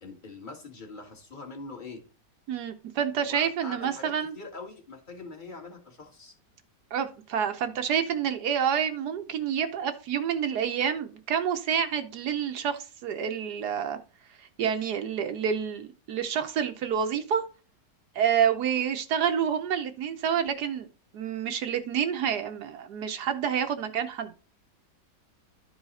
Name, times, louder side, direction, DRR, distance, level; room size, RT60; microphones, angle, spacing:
voice 1, 0.0-2.0 3.3-6.4, left 3 dB, 25° left, 2 dB, 2.1 m, -43 dB
voice 2, 2.5-4.3 6.9-14.0 14.6-17.4 18.1-20.9 21.1-24.3, right 8 dB, 70° right, 7 dB, 1.3 m, -28 dB
12.0 x 4.8 x 4.1 m, 0.35 s
omnidirectional pair, 1.8 m